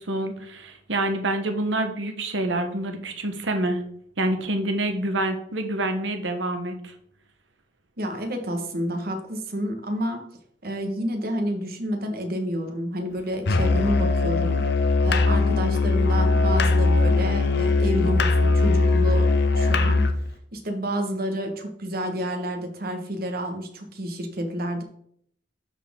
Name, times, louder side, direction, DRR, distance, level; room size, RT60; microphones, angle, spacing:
voice 1, 0.0-3.8 4.2-6.9, right 1 dB, 85° right, 6 dB, 1.2 m, -27 dB
voice 2, 8.0-10.2 10.6-14.6 15.0-20.0 20.5-24.8, equal, 55° right, 5 dB, 1.4 m, -29 dB
Musical instrument, 13.5-20.2, left 3 dB, 65° left, 0.7 m, -20 dB
12.0 x 4.3 x 3.7 m, 0.67 s
head